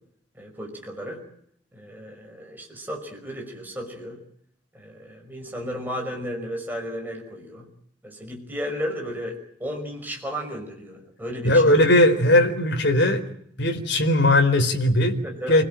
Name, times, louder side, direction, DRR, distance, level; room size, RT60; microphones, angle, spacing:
voice 1, 0.3-1.2 1.7-4.2 4.7-7.7 8.0-11.8 15.2-15.6, equal, 10° right, 1 dB, 5.5 m, -34 dB
voice 2, 11.4-13.2 13.6-15.2 15.5-15.6, left 1 dB, 60° left, 5 dB, 4.0 m, -18 dB
29.0 x 17.5 x 9.0 m, 0.69 s
head